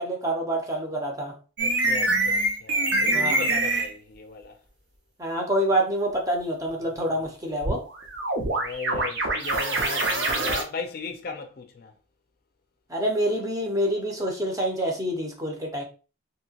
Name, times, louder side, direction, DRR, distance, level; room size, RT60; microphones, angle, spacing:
voice 1, 0.0-1.3 3.1-3.4 5.2-7.8 12.9-15.8, right 1 dB, 15° right, 0.6 m, -27 dB
voice 2, 1.6-4.6 8.6-11.9, left 4 dB, 50° left, 0.4 m, -37 dB
sound 1, 1.6-3.9 7.6-10.6, right 2 dB, 60° right, 0.7 m, -25 dB
2.8 x 2.8 x 2.8 m
head